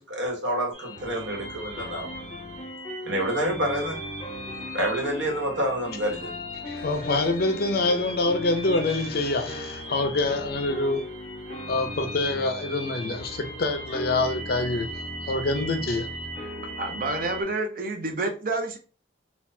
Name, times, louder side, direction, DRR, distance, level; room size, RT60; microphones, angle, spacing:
voice 1, 0.0-2.1 3.0-4.0 4.7-6.3, right 1 dB, 70° right, 1.2 m, -28 dB
sound 1, 0.7-17.4, equal, 30° left, 1.5 m, -36 dB
voice 2, 6.7-11.0 11.7-16.1, left 2 dB, 50° left, 0.5 m, -26 dB
voice 3, 16.8-18.8, right 2 dB, 45° right, 0.5 m, -29 dB
3.9 x 2.3 x 2.6 m
head